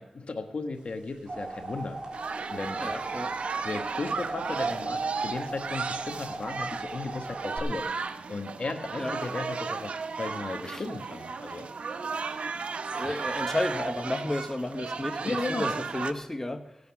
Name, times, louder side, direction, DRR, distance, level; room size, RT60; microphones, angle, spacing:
voice 1, 0.0-2.0 2.5-2.8 3.6-11.7 13.0-13.2 15.2-15.8, left 3 dB, 65° left, 6 dB, 1.5 m, -35 dB
sound 1, 0.9-7.6, right 2 dB, 50° right, 3.8 m, -39 dB
sound 2, 2.1-16.1, right 4 dB, 85° right, 0.9 m, -34 dB
voice 2, 2.8-3.4 9.0-9.2 10.6-10.8 12.9-16.8, left 1 dB, 20° left, 6 dB, 1.2 m, -32 dB
17.0 x 8.6 x 7.1 m, 0.84 s
cardioid pair, 45°, 2 cm